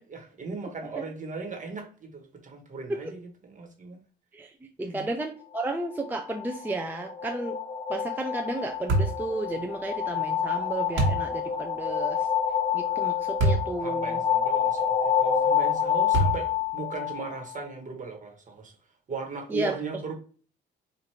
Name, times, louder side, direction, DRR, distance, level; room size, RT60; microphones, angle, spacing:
voice 1, 0.0-4.0 4.8-5.1 13.8-18.7 19.1-20.1, right 4 dB, 40° right, 3 dB, 1.3 m, -38 dB
voice 2, 4.8-7.6 7.9-12.3 12.7-14.2 19.5-19.7, right 2 dB, 10° right, 3 dB, 0.4 m, -33 dB
sound 1, 5.9-17.6, left 8 dB, 40° left, 0.6 m, -28 dB
sound 2, 8.9-9.2 11.0-11.2 13.4-13.7 14.3-14.4 16.1-16.6, right 2 dB, 80° right, 1.3 m, -23 dB
4.7 x 2.5 x 2.8 m, 0.41 s
cardioid pair, 90°, 20 cm